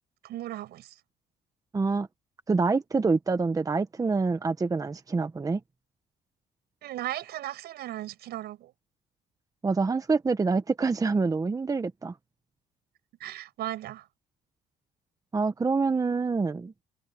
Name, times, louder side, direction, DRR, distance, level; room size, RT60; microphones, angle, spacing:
voice 1, 0.2-1.0 6.8-8.7 13.2-14.1, right 14 dB, 75° right, 5.7 m, -36 dB
voice 2, 1.7-2.1 2.5-5.6 9.6-12.1 15.3-16.7, right 4 dB, 20° right, 1.1 m, -26 dB
cardioid pair, 110°, 17 cm